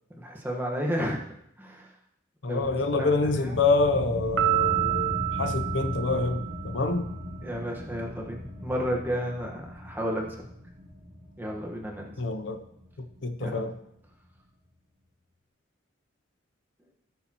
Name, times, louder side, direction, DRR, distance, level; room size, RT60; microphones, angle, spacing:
voice 1, 0.2-1.2 1.6-1.9 2.5-2.7 3.0-3.2 3.4-3.5 7.4-10.4 11.4-12.1 13.4-13.6, equal, 10° right, -1 dB, 1.4 m, -32 dB
voice 2, 2.4-7.1 12.2-12.6 13.0-13.8, left 3 dB, 65° left, 8 dB, 0.7 m, -27 dB
sound 1, 2.6-13.7, left 1 dB, 40° right, 1.8 m, -38 dB
Piano, 4.4-6.9, right 16 dB, 75° right, 0.7 m, -28 dB
16.5 x 6.9 x 3.0 m, 0.76 s
head